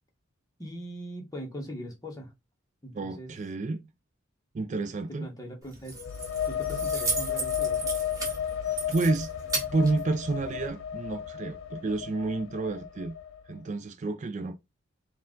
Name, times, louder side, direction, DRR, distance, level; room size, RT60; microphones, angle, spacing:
voice 1, 0.6-2.3 2.8-3.3 5.1-6.0 6.4-8.0, equal, 20° left, 1.1 m, -40 dB
voice 2, 2.9-3.8 4.5-5.3 8.9-9.3 9.7-13.1 13.5-14.6, right 3 dB, 35° right, 0.4 m, -30 dB
Keys jangling, 5.6-10.7, right 3 dB, 20° right, 1.4 m, -35 dB
sound 1, 5.9-13.5, left 9 dB, 75° left, 0.4 m, -33 dB
4.4 x 2.4 x 3.7 m
head